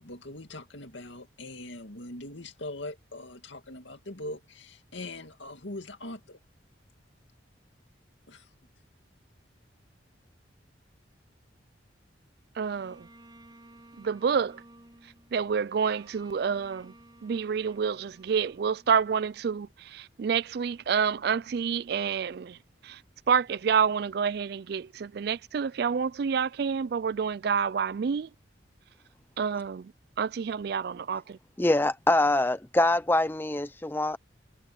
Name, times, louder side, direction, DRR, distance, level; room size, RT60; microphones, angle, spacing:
voice 1, 0.0-6.4 8.3-8.5, left 2 dB, 70° left, 2.4 m, -41 dB
Bowed string instrument, 12.6-19.9, right 1 dB, 25° right, 4.9 m, -56 dB
voice 2, 12.6-13.1 14.0-14.6 15.3-16.9 17.2-22.6 22.8-23.0 23.3-28.3 29.4-29.9 30.2-31.4, right 6 dB, 55° right, 0.3 m, -28 dB
voice 3, 31.6-34.2, left 2 dB, 10° left, 0.5 m, -24 dB
head